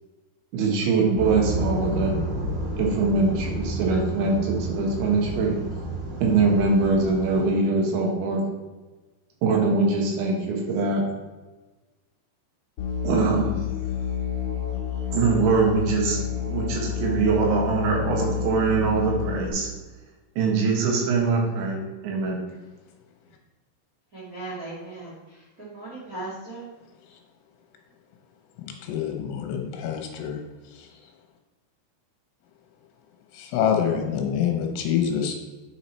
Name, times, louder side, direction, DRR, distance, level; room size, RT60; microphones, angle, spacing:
voice 1, 0.5-2.1 2.8-5.5 6.2-8.4 9.4-11.0 13.0-13.6 15.1-16.2 16.5-19.7 20.4-21.8 22.0-22.4, right 4 dB, 85° right, 0 dB, 3.8 m, -23 dB
sound 1, 1.2-7.4, right 1 dB, 25° right, 1.0 m, -30 dB
Musical instrument, 12.8-19.5, left 8 dB, 45° left, 1.9 m, -29 dB
voice 2, 24.1-25.1 25.6-26.6, right 2 dB, 55° right, -8 dB, 0.9 m, -37 dB
voice 3, 28.6-30.4 30.8-30.9 33.3-35.4, left 8 dB, 75° left, 2 dB, 2.9 m, -26 dB
9.0 x 4.8 x 4.3 m, 1.2 s
omnidirectional pair, 5.1 m